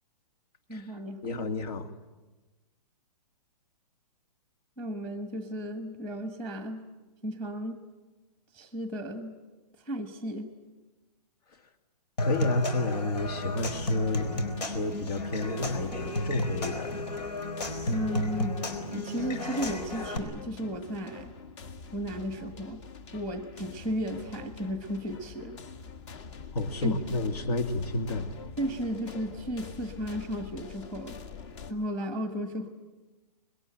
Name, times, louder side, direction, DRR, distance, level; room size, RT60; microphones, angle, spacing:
voice 1, 0.7-1.2 4.8-6.8 7.2-7.8 8.5-9.4 9.8-10.5 17.9-18.6 18.9-21.3 21.9-22.8 23.1-25.6 26.8-27.0 28.6-31.1 31.7-32.7, equal, 5° left, 8 dB, 1.2 m, -34 dB
voice 2, 1.2-1.9 12.2-17.2 26.5-28.3, left 2 dB, 65° left, 7 dB, 2.6 m, -31 dB
Human voice / Acoustic guitar / Percussion, 12.2-20.2, left 1 dB, 80° left, 4.5 m, -33 dB
sound 1, 13.2-31.7, left 5 dB, 45° left, 2.0 m, -45 dB
26.0 x 21.0 x 8.9 m, 1.2 s
hypercardioid pair, 165°, 21 cm